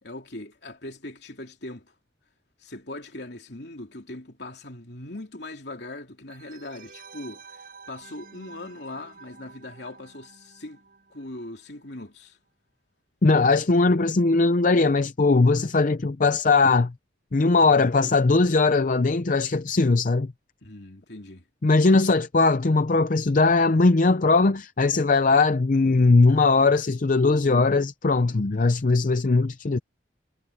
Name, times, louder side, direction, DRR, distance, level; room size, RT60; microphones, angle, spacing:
voice 1, 0.0-1.9 2.6-10.8 11.1-12.4 20.6-21.4, left 2 dB, 60° left, 3.4 m, -40 dB
sound 1, 6.3-11.8 12.0-12.1, right 5 dB, 50° right, 6.4 m, -49 dB
voice 2, 13.2-16.9 17.3-20.3 21.6-29.8, left 3 dB, 45° left, 0.6 m, -20 dB
head